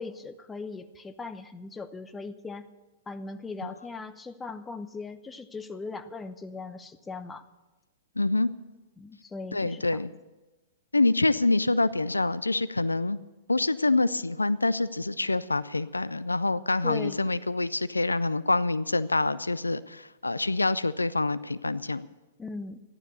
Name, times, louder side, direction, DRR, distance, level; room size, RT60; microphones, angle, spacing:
voice 1, 0.0-2.7 3.1-7.5 9.0-9.8 16.8-17.4 22.4-22.8, left 4 dB, 15° left, 11 dB, 0.8 m, -39 dB
voice 2, 8.2-8.5 9.5-10.1 10.9-13.2 13.5-22.1, left 2 dB, 90° left, 16 dB, 0.4 m, -26 dB
14.0 x 11.5 x 6.8 m, 1.1 s
figure-of-eight pair, 110°, 0 cm